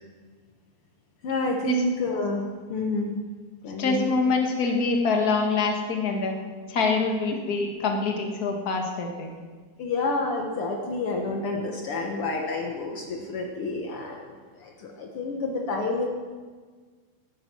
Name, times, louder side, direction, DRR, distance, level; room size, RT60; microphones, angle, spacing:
voice 1, 1.2-3.1 3.6-4.1 9.8-16.0, left 2 dB, 85° left, 1 dB, 1.2 m, -29 dB
voice 2, 3.8-6.3 6.7-9.3, left 4 dB, 45° left, 2 dB, 1.2 m, -25 dB
18.0 x 9.8 x 6.1 m, 1.5 s
omnidirectional pair, 4.4 m